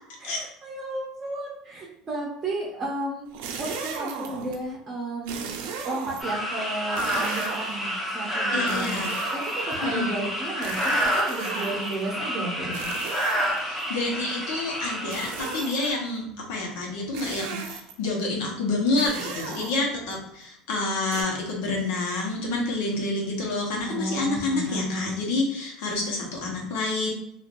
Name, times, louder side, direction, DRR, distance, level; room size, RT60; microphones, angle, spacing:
voice 1, 0.2-3.3 3.6-5.5 5.8-8.9 9.3-12.9 23.8-25.1, right 2 dB, 25° right, -4 dB, 0.8 m, -33 dB
sound 1, 3.3-4.6 5.3-6.4 6.9-7.9 8.7-9.9 10.6-12.0 12.7-13.8 15.1-16.0 17.1-18.1 19.0-20.1 21.1-21.2, right 5 dB, 75° right, 0.5 m, -36 dB
sound 2, 6.2-15.9, equal, 10° left, 0.8 m, -29 dB
voice 2, 8.5-9.1 9.8-10.2 13.6-27.1, left 2 dB, 80° left, -1 dB, 1.0 m, -28 dB
3.1 x 2.4 x 2.5 m, 0.74 s
supercardioid pair, 140°, 0 cm